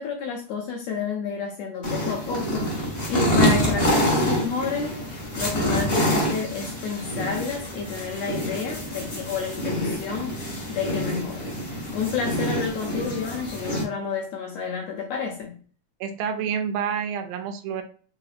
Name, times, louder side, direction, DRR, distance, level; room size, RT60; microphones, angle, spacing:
voice 1, 0.0-5.0 5.4-10.4 10.7-11.6 11.9-15.6, left 5 dB, 85° left, 1.5 m, -30 dB
sound 1, 1.8-13.8, equal, 55° left, 0.6 m, -26 dB
voice 2, 16.0-17.8, right 7 dB, 85° right, 2.1 m, -28 dB
5.0 x 2.8 x 2.4 m
omnidirectional pair, 3.6 m